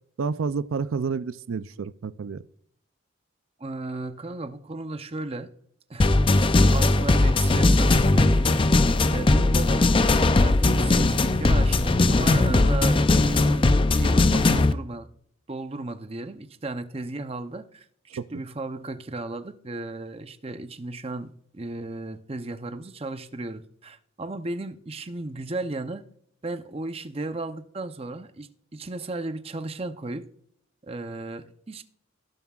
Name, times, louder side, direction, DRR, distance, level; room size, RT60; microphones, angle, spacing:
voice 1, 0.2-2.4 18.2-18.4, right 5 dB, 85° right, 0.4 m, -29 dB
voice 2, 3.6-5.5 5.9-6.1 6.4-8.5 9.1-15.1 15.5-17.8 18.1-26.0 26.4-30.2 30.8-31.8, right 2 dB, 30° right, 0.6 m, -35 dB
sound 1, 6.0-14.7, left 2 dB, 25° left, 0.4 m, -19 dB
18.0 x 7.2 x 2.4 m
head